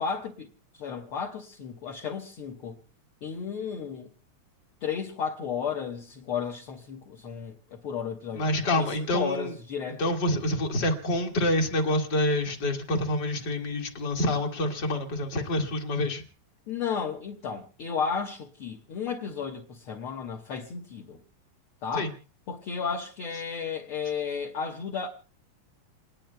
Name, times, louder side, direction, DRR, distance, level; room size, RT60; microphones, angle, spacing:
voice 1, 0.0-2.8 3.2-4.1 4.8-8.4 8.8-10.2 16.7-21.2 21.8-22.1 22.5-25.1, left 6 dB, 50° left, 1.9 m, -33 dB
voice 2, 8.4-9.5 10.0-16.2 21.9-22.1, left 1 dB, 35° left, 2.3 m, -27 dB
29.0 x 20.5 x 2.3 m
omnidirectional pair, 3.6 m